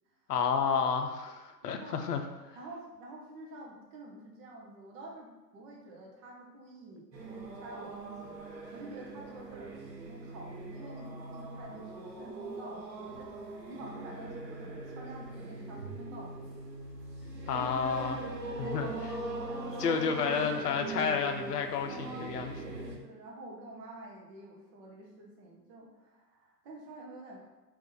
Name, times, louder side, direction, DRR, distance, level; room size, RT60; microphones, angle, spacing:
voice 1, 0.3-1.3 1.6-2.2 17.5-18.2 18.6-18.9 19.8-22.5, left 6 dB, 70° left, 6 dB, 0.7 m, -30 dB
voice 2, 1.6-2.1 2.5-7.1 7.6-9.8 10.0-16.7 17.5-17.7 18.2-20.1 21.8-27.5, right 1 dB, 25° right, -2 dB, 0.4 m, -48 dB
sound 1, 7.1-23.0, right 2 dB, 85° right, 1.0 m, -41 dB
3.6 x 2.6 x 3.8 m, 1.1 s
hypercardioid pair, 115°, 48 cm